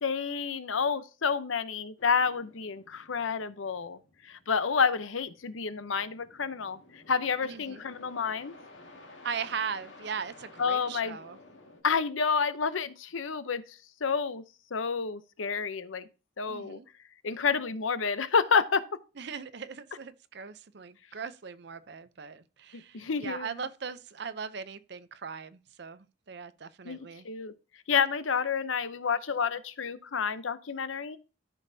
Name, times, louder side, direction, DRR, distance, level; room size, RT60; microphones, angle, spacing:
voice 1, 0.0-4.0 4.3-8.5 10.6-11.2 11.8-13.6 14.0-14.4 14.7-16.0 16.4-16.8 17.2-18.8 22.9-23.5 26.8-27.5 27.9-31.2, left 5 dB, 90° left, 0.7 m, -29 dB
sound 1, 2.0-11.8, left 2 dB, 70° left, 1.9 m, -54 dB
voice 2, 7.4-7.8 9.2-11.4 16.5-16.9 19.2-27.3, right 6 dB, 60° right, 0.6 m, -39 dB
13.5 x 5.4 x 2.7 m
head